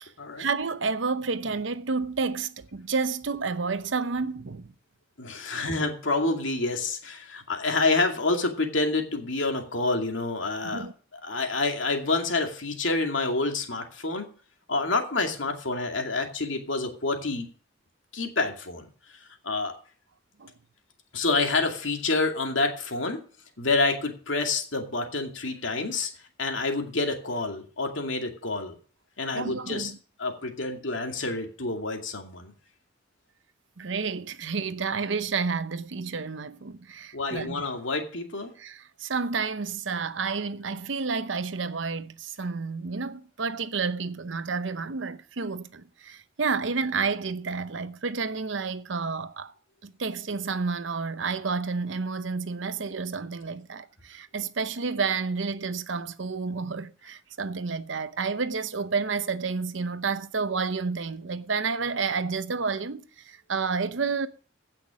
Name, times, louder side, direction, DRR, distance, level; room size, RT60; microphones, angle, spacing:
voice 1, 0.4-4.7 5.5-5.6 10.6-10.9 20.4-20.5 29.3-30.0 33.8-37.6 38.6-49.5 49.8-64.3, right 4 dB, 70° right, 0.8 m, -30 dB
voice 2, 5.2-10.9 11.2-14.3 14.7-17.5 18.1-18.9 19.4-19.8 21.1-23.2 23.6-26.1 26.4-28.7 29.2-29.9 30.2-32.5 37.1-38.5, left 3 dB, 70° left, 2.4 m, -28 dB
16.0 x 6.0 x 6.3 m
head